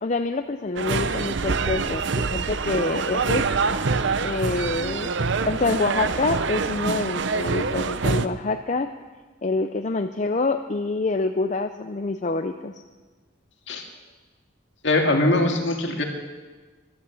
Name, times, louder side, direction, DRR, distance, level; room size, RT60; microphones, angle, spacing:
voice 1, 0.0-2.0 2.3-3.5 4.2-5.1 5.5-8.9 9.4-12.8, left 3 dB, 35° left, 7 dB, 0.5 m, -26 dB
sound 1, 0.8-8.3, right 4 dB, 60° right, 0.6 m, -25 dB
voice 2, 14.8-16.0, left 2 dB, 60° left, 2 dB, 2.1 m, -21 dB
15.5 x 12.0 x 7.1 m, 1.3 s
head